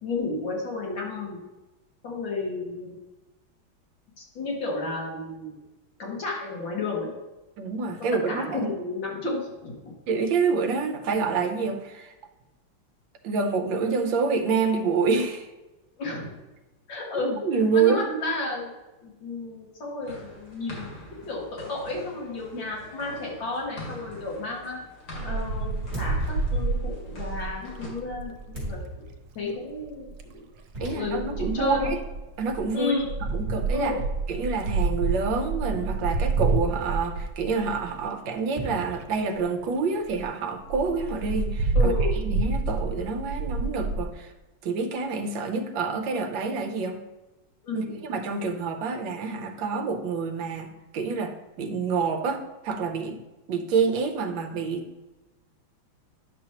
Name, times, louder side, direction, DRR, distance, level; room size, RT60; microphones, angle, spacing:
voice 1, 0.0-1.4 2.0-3.0 4.3-5.6 6.0-7.1 8.3-9.9 16.0-16.3 16.9-17.4 17.7-18.7 19.0-24.8 25.2-29.0 29.4-30.5 30.8-31.9 32.7-33.1 33.7-34.0 41.7-42.2 47.6-48.0, left 3 dB, 65° left, -3 dB, 2.5 m, -32 dB
voice 2, 7.6-8.7 10.1-12.1 13.2-15.5 17.4-18.0 30.8-32.0 32.4-33.0 33.3-34.0 34.3-42.0 42.2-44.3 44.6-47.0 47.7-53.2 53.5-54.8, right 4 dB, 70° right, 5 dB, 1.4 m, -27 dB
sound 1, 20.0-27.9, left 1 dB, 90° left, 3.0 m, -44 dB
Wind, 25.1-28.8 29.9-30.3 31.0-38.0 38.6-38.7 39.0-39.1 39.4-39.5 39.8-39.9 40.1-40.2 40.7-44.0, right 3 dB, 90° right, 1.5 m, -28 dB
sound 2, 25.9-26.9 28.5-29.4 30.7-31.4 31.8-31.9 33.3-34.2 36.5-37.3 38.6-39.7, right 1 dB, 20° right, 3.0 m, -38 dB
10.0 x 6.1 x 2.9 m, 1.1 s
omnidirectional pair, 2.2 m